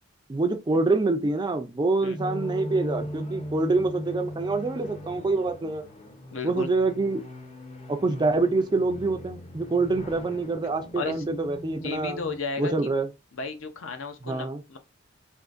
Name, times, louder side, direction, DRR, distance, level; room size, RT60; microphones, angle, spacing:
voice 1, 0.3-5.8 6.4-7.2 7.9-12.2 12.6-13.1 14.2-14.6, right 3 dB, 20° right, 0.3 m, -26 dB
sound 1, 2.2-12.4, equal, 30° left, 0.5 m, -39 dB
voice 2, 6.3-6.7 11.0-11.3 11.8-12.9 13.3-14.8, left 4 dB, 70° left, 0.6 m, -34 dB
3.6 x 2.5 x 2.5 m
head